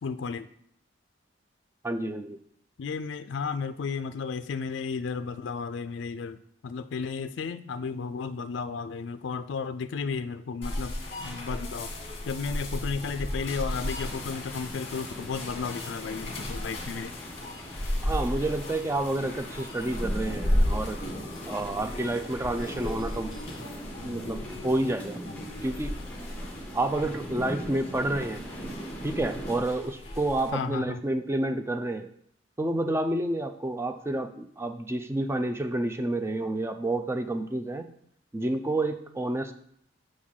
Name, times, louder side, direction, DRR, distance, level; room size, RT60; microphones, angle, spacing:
voice 1, 0.0-0.5 2.8-11.0 11.2-17.2 22.9-23.1 24.0-24.7 25.3-25.7 27.3-27.4 27.8-28.0 30.5-31.0, left 5 dB, 65° left, 11 dB, 0.4 m, -34 dB
voice 2, 1.8-2.4 18.0-21.0 21.5-23.3 24.0-25.2 25.6-26.0 26.7-28.4 29.0-32.1 32.6-37.9 38.3-39.5, right 1 dB, 15° right, 8 dB, 0.4 m, -29 dB
sound 1, 10.6-30.5, left 1 dB, 30° left, 1.4 m, -34 dB
sound 2, 13.9-29.6, right 1 dB, 5° left, 0.9 m, -42 dB
6.3 x 3.8 x 6.3 m, 0.67 s
head